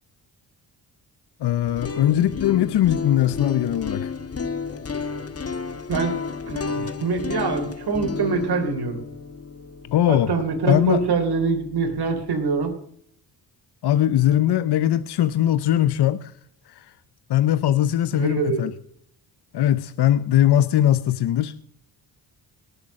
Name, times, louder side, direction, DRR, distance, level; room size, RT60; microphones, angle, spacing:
voice 1, 1.4-4.1 9.9-10.3 10.7-11.0 13.8-16.3 16.7-16.9 17.3-18.7 19.5-21.5, left 12 dB, 65° left, 0.8 m, -20 dB
sound 1, 1.6-11.6, left 5 dB, 35° left, 1.4 m, -32 dB
voice 2, 5.9-6.2 6.5-9.0 10.1-12.8 18.1-18.6, right 4 dB, 60° right, 3.5 m, -24 dB
19.0 x 6.8 x 6.3 m
cardioid pair, 70°, 44 cm